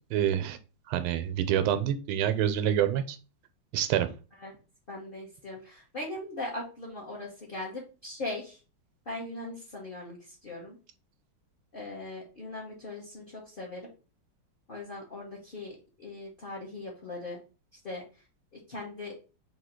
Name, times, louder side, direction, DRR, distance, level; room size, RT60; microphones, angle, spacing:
voice 1, 0.1-0.6 0.9-3.2 3.7-4.1, right 10 dB, 90° right, 10 dB, 1.5 m, -27 dB
voice 2, 4.9-8.6 9.1-10.8 11.7-13.9 14.7-17.4 17.8-18.0 18.7-19.1, left 2 dB, 40° left, -4 dB, 0.8 m, -39 dB
3.8 x 2.8 x 4.2 m, 0.33 s
omnidirectional pair, 2.3 m